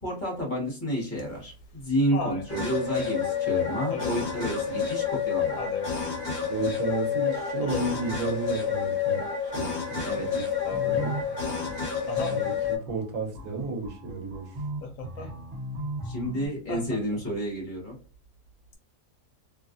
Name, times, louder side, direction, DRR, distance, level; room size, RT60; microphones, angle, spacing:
voice 1, 0.0-5.5 10.0-10.3 15.1-15.4 16.0-18.0, equal, 35° left, -2 dB, 1.2 m, -30 dB
Laughter, 1.2-2.5 3.9-4.4 5.6-6.0 7.6-8.1 10.6-11.1 12.1-12.4 14.8-15.3 16.7-17.3 18.7-18.8, left 5 dB, 70° left, 1.0 m, -36 dB
sound 1, 2.5-12.8, left 7 dB, 55° left, 1.2 m, -29 dB
voice 2, 6.4-10.4 10.8-11.2 12.3-14.5, right 4 dB, 90° right, 1 dB, 1.3 m, -33 dB
sound 2, 10.7-16.5, right 1 dB, 60° right, 1.3 m, -37 dB
2.9 x 2.4 x 2.4 m, 0.36 s
omnidirectional pair, 1.5 m